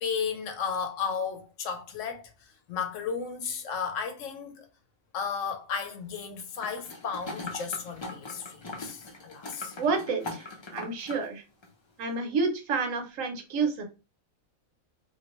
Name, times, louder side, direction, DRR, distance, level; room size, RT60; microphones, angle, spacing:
voice 1, 0.0-4.7 5.1-9.8, left 6 dB, 70° left, 0.9 m, -34 dB
sound 1, 6.6-11.3 11.6-11.7, left 2 dB, 35° left, 0.4 m, -40 dB
voice 2, 9.8-11.4 12.0-13.8, right 4 dB, 75° right, 1.1 m, -29 dB
3.1 x 2.5 x 2.9 m
omnidirectional pair, 1.4 m